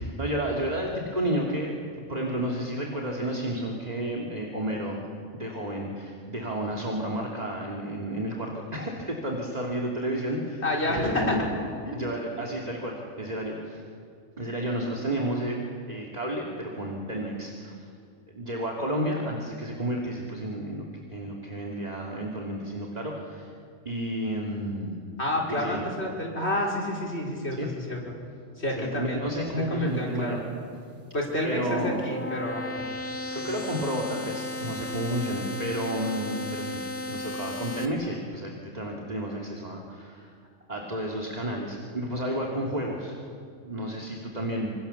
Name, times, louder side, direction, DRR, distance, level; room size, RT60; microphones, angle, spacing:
voice 1, 0.0-1.7 2.1-5.0 5.3-10.6 10.9-11.5 11.9-13.8 14.4-15.6 15.9-17.8 18.3-20.8 21.1-23.5 23.8-24.9 25.5-25.8 27.6-27.7 28.8-30.4 31.4-32.0 33.3-36.8 37.0-40.3 40.7-43.2 43.6-44.7, right 1 dB, 35° right, -1 dB, 2.7 m, -31 dB
voice 2, 10.6-11.4 11.9-12.1 25.2-28.0 28.6-29.2 29.7-30.4 31.1-32.8 33.4-33.5, left 1 dB, 60° left, -2 dB, 5.2 m, -29 dB
sound 1, 31.4-37.9, left 2 dB, 10° left, 2.2 m, -35 dB
27.0 x 26.5 x 7.1 m, 2.3 s
omnidirectional pair, 1.3 m